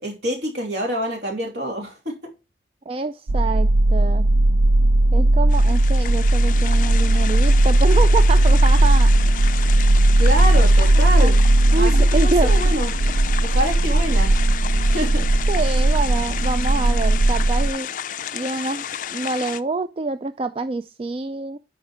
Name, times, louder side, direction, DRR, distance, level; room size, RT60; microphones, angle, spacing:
voice 1, 0.0-2.1 10.2-11.4 11.7-12.9 13.4-14.3 14.9-15.3, equal, 70° right, 1 dB, 2.9 m, -26 dB
voice 2, 2.9-4.3 5.1-9.1 11.0-11.3 11.7-12.5 15.5-17.9 18.3-18.9 19.1-21.6, right 3 dB, 30° right, 10 dB, 0.3 m, -26 dB
sound 1, 3.3-17.7, right 1 dB, 90° right, 0.5 m, -17 dB
sound 2, 5.5-19.6, left 9 dB, 45° left, 0.4 m, -32 dB
9.9 x 4.3 x 4.8 m, 0.28 s
head